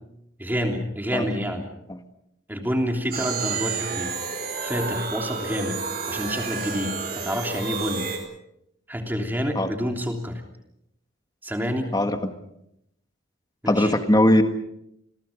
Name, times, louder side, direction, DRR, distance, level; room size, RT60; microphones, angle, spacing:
voice 1, 0.4-1.7 2.5-4.2 4.6-5.8 6.1-8.1 8.9-10.4 11.4-11.9 13.6-13.9, equal, 10° right, 2 dB, 3.2 m, -28 dB
sound 1, 3.1-8.2, right 5 dB, 45° right, 4.8 m, -30 dB
voice 2, 11.9-12.3 13.7-14.4, left 1 dB, 20° left, 7 dB, 1.7 m, -20 dB
29.5 x 21.5 x 5.3 m, 0.79 s
head